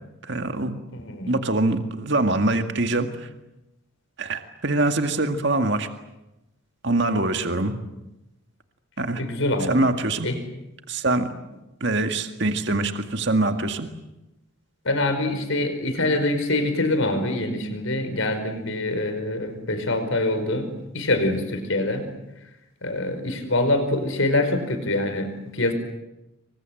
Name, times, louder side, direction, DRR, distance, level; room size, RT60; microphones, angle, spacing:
voice 1, 0.2-0.8 1.3-3.3 4.2-5.9 6.8-7.7 9.0-9.2 9.7-10.3 10.9-11.3 11.8-13.9, right 2 dB, 55° right, 7 dB, 2.0 m, -24 dB
voice 2, 0.9-1.4 9.2-9.9 10.2-10.4 14.8-22.0 22.8-25.7, left 2 dB, 65° left, 8 dB, 5.1 m, -25 dB
28.0 x 24.0 x 7.9 m, 0.95 s
head